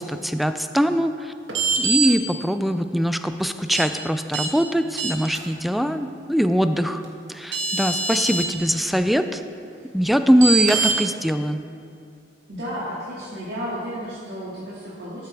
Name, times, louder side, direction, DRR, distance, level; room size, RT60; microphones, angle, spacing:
voice 1, 0.0-1.3 1.8-7.0 7.3-9.4 9.9-11.6, equal, ahead, 9 dB, 0.3 m, -22 dB
sound 1, 1.5-2.1 3.7-3.8 4.3-4.5 5.0-5.4 7.0-7.1 7.5-8.4 10.4-10.9, right 4 dB, 80° right, 1.5 m, -23 dB
voice 2, 12.5-15.3, equal, 65° right, -10 dB, 2.1 m, -32 dB
13.0 x 7.9 x 3.4 m, 2.5 s
head